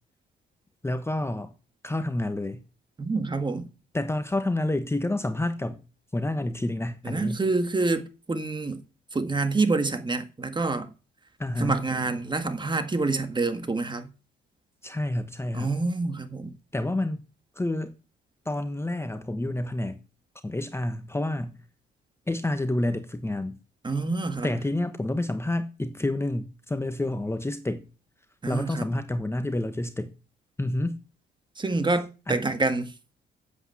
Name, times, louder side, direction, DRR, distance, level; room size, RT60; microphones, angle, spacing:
voice 1, 0.8-1.5 1.8-2.6 3.9-5.8 6.1-7.4 11.4-11.8 14.8-15.7 16.7-17.2 17.5-17.9 18.4-20.0 20.4-21.6 22.3-23.6 24.4-27.9 28.5-30.1 30.6-31.0 32.3-32.4, left 1 dB, 10° left, 1.2 m, -29 dB
voice 2, 3.0-3.7 7.0-8.8 9.1-10.9 11.6-14.1 15.5-16.5 23.8-24.5 28.4-28.9 31.6-32.9, right 3 dB, 25° right, 1.8 m, -27 dB
8.5 x 7.9 x 7.9 m
cardioid pair, 90°, 20 cm